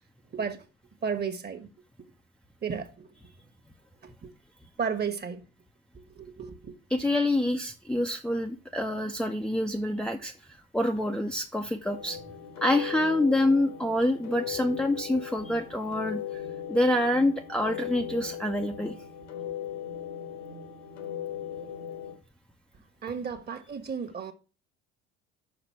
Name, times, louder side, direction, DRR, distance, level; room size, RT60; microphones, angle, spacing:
voice 1, 1.0-1.7 2.6-3.2 4.0-4.3 4.8-5.4 5.9-6.7 23.0-24.3, right 6 dB, 30° right, 1.4 m, -33 dB
voice 2, 6.9-12.2 12.6-16.4 16.7-18.9, left 1 dB, 5° left, 0.6 m, -27 dB
sound 1, 11.8-22.1, left 9 dB, 80° left, 1.6 m, -38 dB
5.8 x 5.1 x 5.8 m
figure-of-eight pair, 60°, 34 cm